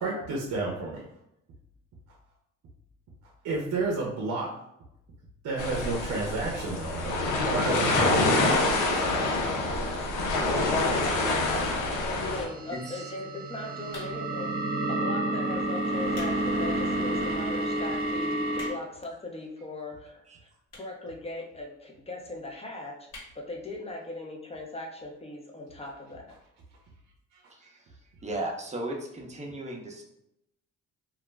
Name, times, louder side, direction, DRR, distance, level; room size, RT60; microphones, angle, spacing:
voice 1, 0.0-1.1 3.2-4.5 5.4-7.2 7.4-9.4 10.1-10.4 27.3-27.4, right 3 dB, 60° right, -2 dB, 0.6 m, -32 dB
sound 1, 5.6-12.5, left 2 dB, 80° left, 0.6 m, -26 dB
voice 2, 12.1-14.5 14.9-20.2 20.7-23.1 23.3-26.3, left 2 dB, 20° left, 0 dB, 0.6 m, -39 dB
sound 2, 12.2-18.7, right 1 dB, 40° right, 1.0 m, -30 dB
voice 3, 12.7-13.1 19.8-19.9 20.3-20.4 27.5-27.8 28.2-30.0, right 1 dB, 25° right, 0 dB, 0.6 m, -36 dB
sound 3, 13.9-14.4 15.1-15.3 15.9-16.4 16.8-16.9 17.5-17.6 17.8-17.9 18.2-19.0 19.8-19.9 20.7-21.0 21.3-21.4 21.6-21.7 21.9-22.0 22.3-22.6 23.1-23.3 23.7-23.8 24.0-24.1, left 2 dB, 55° left, 1.2 m, -45 dB
2.4 x 2.0 x 3.2 m, 0.81 s
cardioid pair, 90°, 30 cm